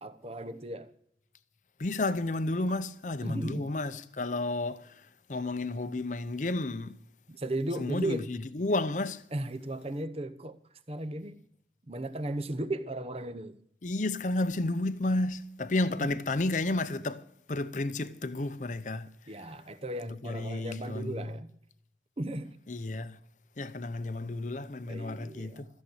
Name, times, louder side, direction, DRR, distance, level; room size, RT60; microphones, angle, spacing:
voice 1, 0.0-0.9 2.7-2.8 3.2-3.7 7.3-8.3 9.3-10.6 10.9-11.4 11.9-13.6 15.8-16.1 19.3-21.5 22.2-22.6 24.9-25.7, right 1 dB, 35° right, 0.8 m, -36 dB
voice 2, 1.8-4.9 5.3-7.0 7.8-9.2 13.8-17.2 17.5-19.1 20.2-21.3 22.7-23.2 23.6-25.7, left 2 dB, 45° left, 0.7 m, -31 dB
14.5 x 7.5 x 8.0 m
head